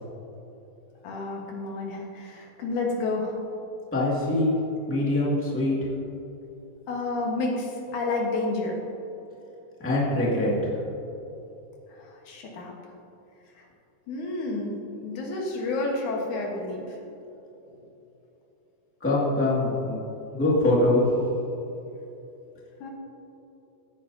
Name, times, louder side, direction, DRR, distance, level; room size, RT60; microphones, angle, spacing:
voice 1, 1.0-3.4 6.9-8.8 11.9-12.7 13.6-13.7 14.1-14.7 15.0-17.0 22.8-22.9, left 2 dB, 75° left, -1 dB, 2.8 m, -30 dB
voice 2, 3.9-4.6 4.9-5.8 9.8-10.7 19.0-20.0 20.3-21.0, left 1 dB, 5° left, -5 dB, 1.5 m, -23 dB
15.5 x 9.5 x 2.8 m, 3.0 s
omnidirectional pair, 3.6 m